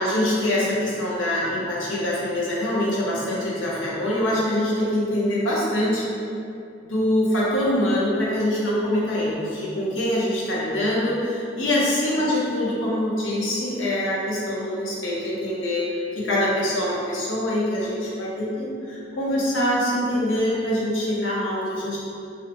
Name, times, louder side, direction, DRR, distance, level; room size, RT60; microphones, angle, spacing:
voice 1, 0.0-6.1 6.8-15.8 16.2-22.0, left 1 dB, 80° left, -6 dB, 0.7 m, -24 dB
2.7 x 2.0 x 2.9 m, 2.5 s
head